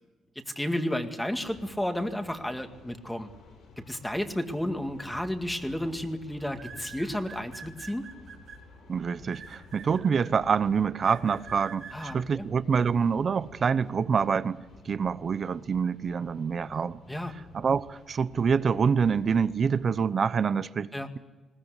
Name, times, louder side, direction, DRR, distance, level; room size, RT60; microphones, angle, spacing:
voice 1, 0.6-3.3 3.9-8.1 11.9-12.5 17.1-17.3 20.9-21.1, left 1 dB, 5° left, 2.0 m, -32 dB
sound 1, 1.3-20.0, left 3 dB, 65° left, 6.8 m, -52 dB
sound 2, 5.1-5.3 6.5-8.6 9.3-10.3 11.0-12.1, right 6 dB, 70° right, 3.6 m, -45 dB
voice 2, 8.9-17.0 17.5-20.9, right 6 dB, 45° right, 0.8 m, -26 dB
21.0 x 19.0 x 8.3 m
cardioid pair, 115°, 0 cm